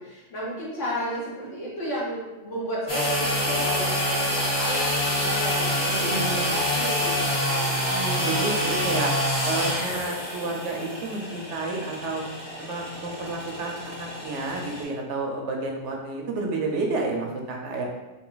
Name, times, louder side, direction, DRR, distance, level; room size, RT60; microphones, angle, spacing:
voice 1, 0.0-7.7, equal, 75° left, -7 dB, 1.7 m, -32 dB
sound 1, 2.9-14.8, equal, 35° left, 1.2 m, -27 dB
voice 2, 5.8-6.6 7.7-9.1 9.4-12.2 12.6-17.8, right 2 dB, 70° right, 1 dB, 1.0 m, -30 dB
3.9 x 2.5 x 3.9 m, 1.1 s
omnidirectional pair, 1.3 m